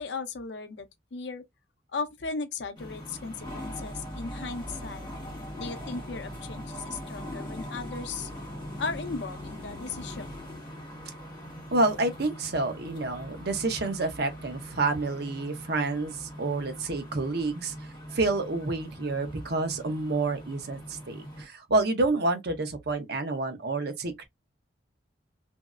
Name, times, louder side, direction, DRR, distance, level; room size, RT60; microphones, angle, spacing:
voice 1, 0.0-1.4 1.9-5.1 5.6-8.3 8.8-10.3, left 4 dB, 70° left, 0.6 m, -36 dB
sound 1, 2.8-21.5, equal, 25° left, 1.8 m, -41 dB
voice 2, 11.7-17.7 18.1-24.2, right 2 dB, 60° right, 0.8 m, -28 dB
3.1 x 2.6 x 2.4 m
head